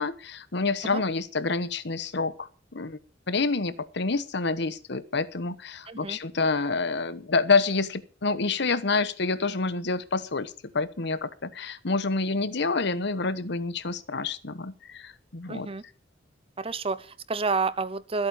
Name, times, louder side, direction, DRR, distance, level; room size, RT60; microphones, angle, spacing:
voice 1, 0.0-3.0 3.3-15.7, left 3 dB, 65° left, 14 dB, 1.1 m, -28 dB
voice 2, 5.9-6.2 15.5-15.8 16.6-18.3, right 4 dB, 30° right, 15 dB, 0.8 m, -29 dB
13.0 x 8.7 x 7.0 m, 0.38 s
head